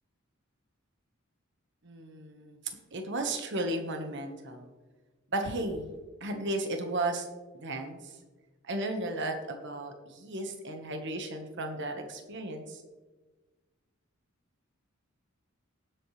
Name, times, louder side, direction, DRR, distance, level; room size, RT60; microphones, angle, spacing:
voice 1, 1.8-2.6 2.9-4.7 5.3-5.9 6.2-7.3 7.5-8.1 8.6-12.8, right 2 dB, 60° right, 5 dB, 1.4 m, -34 dB
18.0 x 7.9 x 3.3 m, 1.2 s
head